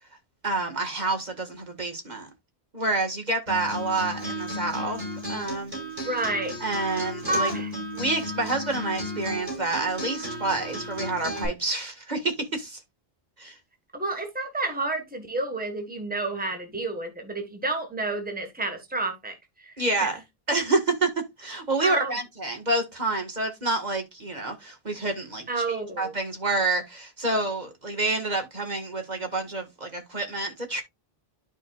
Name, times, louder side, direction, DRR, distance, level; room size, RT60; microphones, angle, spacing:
voice 1, 0.4-2.3 2.7-5.0 5.3-5.7 6.6-7.5 7.9-12.8 13.4-13.6 19.8-20.2 20.5-21.1 21.4-30.8, right 2 dB, 45° right, 1.8 m, -28 dB
Acoustic guitar, 3.5-11.5, equal, 65° right, 5.8 m, -34 dB
voice 2, 6.0-6.5 7.3-7.7 13.9-19.7 20.0-20.1 21.8-22.1 25.5-26.1, right 2 dB, 10° right, 1.5 m, -30 dB
12.0 x 5.1 x 2.4 m
omnidirectional pair, 1.0 m